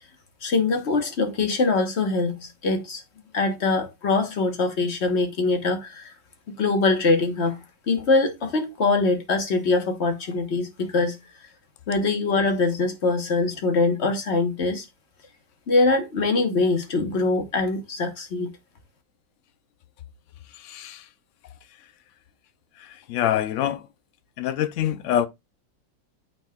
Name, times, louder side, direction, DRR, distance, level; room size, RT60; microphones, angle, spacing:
voice 1, 0.4-3.0 3.3-6.1 6.5-7.6 7.9-11.2 11.9-14.9 15.7-18.5, left 3 dB, 40° left, 1.3 m, -23 dB
voice 2, 20.6-21.1 22.8-23.9 24.4-25.3, left 11 dB, 85° left, 0.6 m, -25 dB
12.0 x 4.1 x 2.3 m
omnidirectional pair, 1.9 m